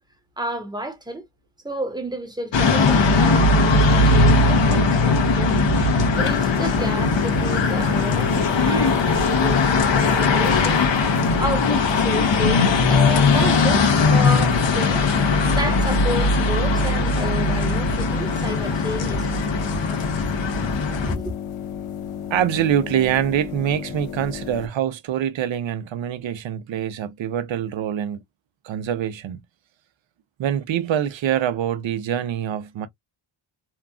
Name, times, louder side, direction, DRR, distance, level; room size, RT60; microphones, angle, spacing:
voice 1, 0.4-1.3 1.6-5.6 6.1-9.6 10.0-10.8 11.4-15.1 15.5-19.4 21.0-21.3, right 1 dB, 10° right, 1.0 m, -31 dB
sound 1, 2.5-21.1, left 3 dB, 60° left, 0.9 m, -19 dB
sound 2, 6.1-24.7, left 8 dB, 85° left, 0.6 m, -33 dB
voice 2, 22.3-28.2 28.6-29.4 30.4-32.9, right 10 dB, 65° right, 0.6 m, -24 dB
2.9 x 2.4 x 2.3 m
wide cardioid pair, 115°, 50 cm